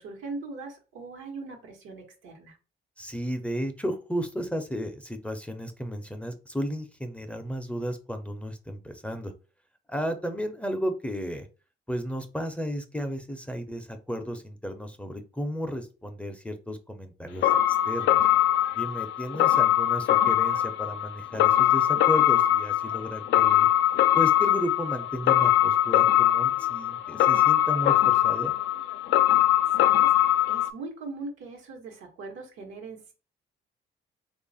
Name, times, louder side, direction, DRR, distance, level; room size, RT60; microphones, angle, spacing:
voice 1, 0.0-2.6 29.7-33.1, right 3 dB, 85° right, 2 dB, 1.1 m, -40 dB
voice 2, 3.0-9.3 9.9-11.5 11.9-17.6 17.8-18.2 18.8-23.7 24.1-28.5, equal, 5° left, 6 dB, 0.5 m, -33 dB
sound 1, 17.4-30.7, left 12 dB, 70° left, 0.4 m, -22 dB
3.2 x 2.4 x 3.9 m, 0.33 s
cardioid pair, 90°, 20 cm